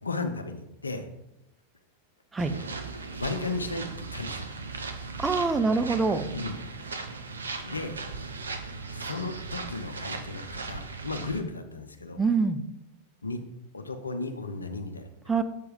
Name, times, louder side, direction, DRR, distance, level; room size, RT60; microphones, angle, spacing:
voice 1, 0.0-1.1 2.5-2.6 3.0-4.5 6.3-6.6 7.6-8.0 8.9-12.2 13.2-13.4 13.7-15.4, left 3 dB, 80° left, 7 dB, 0.7 m, -35 dB
sound 1, 2.4-11.4, right 4 dB, 75° right, 0.7 m, -37 dB
voice 2, 5.2-6.2 12.2-12.6 15.3-15.4, right 4 dB, 15° right, 9 dB, 0.5 m, -24 dB
7.3 x 4.6 x 4.9 m, 0.87 s
figure-of-eight pair, 90°, 0 cm